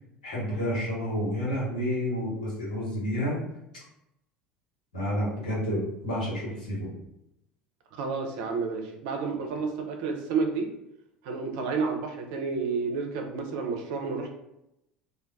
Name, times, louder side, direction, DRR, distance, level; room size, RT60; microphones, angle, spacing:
voice 1, 0.2-3.4 4.9-6.9, equal, 80° left, -7 dB, 1.2 m, -30 dB
voice 2, 8.0-10.7 11.2-14.3, right 4 dB, 65° right, 3 dB, 0.5 m, -30 dB
2.4 x 2.1 x 2.4 m, 0.83 s
figure-of-eight pair, 70°, 4 cm